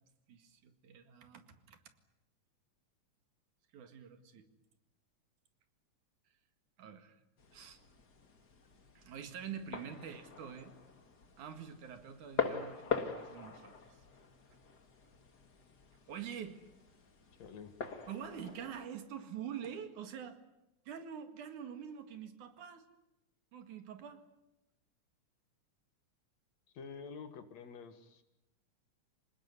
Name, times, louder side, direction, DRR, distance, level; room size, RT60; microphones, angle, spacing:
voice 1, 0.3-1.8 3.7-4.4 6.8-7.2 7.5-7.8 8.9-10.7 11.4-13.8 16.1-16.6 18.1-20.4 20.9-22.8 23.5-24.2, right 8 dB, 85° right, 8 dB, 3.4 m, -46 dB
sound 1, 7.4-18.9, left 6 dB, 35° left, 2.4 m, -43 dB
voice 2, 17.4-17.7 26.7-28.2, left 5 dB, 65° left, 9 dB, 2.9 m, -48 dB
26.5 x 19.5 x 9.7 m, 0.93 s
omnidirectional pair, 3.4 m